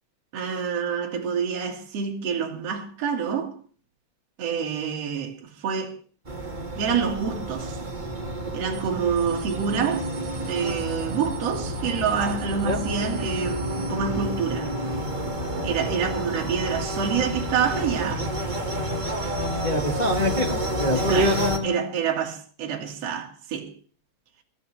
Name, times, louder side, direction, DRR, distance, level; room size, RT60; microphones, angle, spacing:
voice 1, 0.3-3.6 4.4-6.0 6.8-7.8 8.5-10.1 10.4-14.7 15.6-18.3 20.9-23.7, right 6 dB, 55° right, 3.0 m, -27 dB
sound 1, 6.2-21.6, equal, 20° right, 1.5 m, -30 dB
sound 2, 8.7-8.9 9.2-13.9, right 5 dB, 15° left, 4.5 m, -43 dB
voice 2, 19.6-21.9, equal, 70° left, 0.4 m, -25 dB
25.0 x 13.5 x 3.3 m
omnidirectional pair, 3.5 m